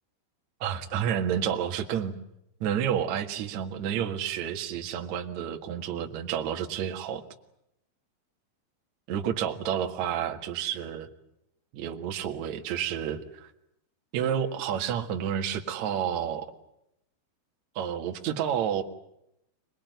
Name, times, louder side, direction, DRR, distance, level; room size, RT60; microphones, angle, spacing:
voice 1, 0.6-2.1 2.6-7.2 9.1-11.1 11.7-13.5 14.1-16.5 17.8-18.8, right 9 dB, 60° right, 4 dB, 1.9 m, -30 dB
25.5 x 20.5 x 9.3 m, 0.80 s
omnidirectional pair, 6.0 m